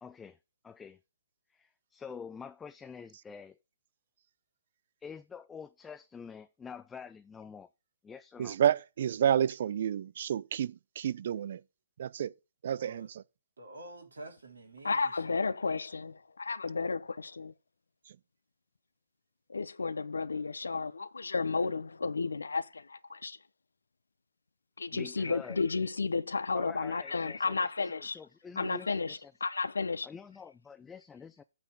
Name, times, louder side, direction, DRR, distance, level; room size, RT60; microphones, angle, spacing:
voice 1, 0.0-0.4 0.6-1.0 1.5-3.6 5.0-7.7 8.0-8.6 24.9-25.6 26.5-29.3 30.0-31.4, left 6 dB, 10° left, 0.4 m, -47 dB
voice 2, 8.4-11.6 12.0-12.3 12.6-13.2, right 9 dB, 50° right, 0.4 m, -30 dB
voice 3, 12.8-13.1 13.6-15.4, right 2 dB, 70° right, 3.1 m, -48 dB
voice 4, 14.8-17.5 19.5-23.4 24.8-28.2 28.6-30.1, left 4 dB, 75° left, 0.6 m, -32 dB
8.6 x 4.2 x 7.0 m
figure-of-eight pair, 130°, 0 cm